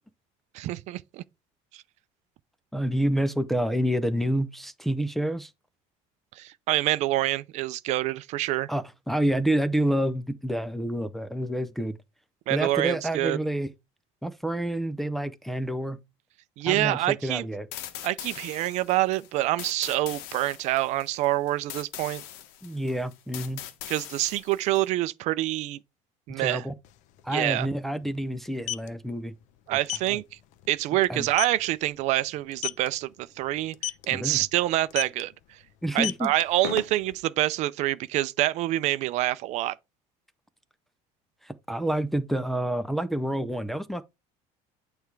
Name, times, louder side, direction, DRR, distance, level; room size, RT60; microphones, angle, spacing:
voice 1, 0.5-1.2 6.4-8.7 12.5-13.4 16.6-17.4 18.0-22.2 23.9-25.8 26.3-26.6 27.3-27.7 29.7-30.2 30.7-33.7 34.1-35.3 35.9-39.7, right 16 dB, 50° right, 0.5 m, -26 dB
voice 2, 2.7-5.5 8.7-12.0 12.5-13.7 14.2-16.0 16.6-17.7 22.6-23.6 26.4-26.7 27.2-29.3 30.1-30.2 31.1-31.3 34.1-34.4 35.8-36.3 41.4-44.0, right 1 dB, ahead, 0.5 m, -28 dB
sound 1, 17.7-24.9, left 11 dB, 90° left, 1.6 m, -42 dB
sound 2, 26.8-26.9 27.2-27.4 28.4-28.9 29.9-30.1 30.5-30.7 31.0-31.1 31.4-31.7 32.5-32.9 33.7-34.1 34.9-35.2 35.9-37.2, left 13 dB, 55° left, 0.7 m, -31 dB
8.7 x 3.4 x 4.6 m
cardioid pair, 170°, 15 cm